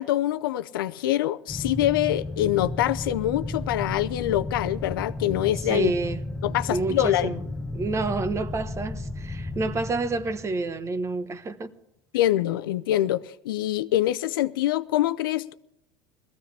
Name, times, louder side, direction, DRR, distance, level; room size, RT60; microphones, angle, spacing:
voice 1, 0.0-5.9 6.4-7.3 12.1-15.5, left 13 dB, 80° left, 0.6 m, -25 dB
sound 1, 1.5-11.1, left 2 dB, 5° left, 0.9 m, -34 dB
voice 2, 5.7-6.2 6.7-7.5 7.7-11.7, right 3 dB, 25° right, 1.1 m, -29 dB
19.5 x 14.5 x 3.4 m
hypercardioid pair, 95°, 11 cm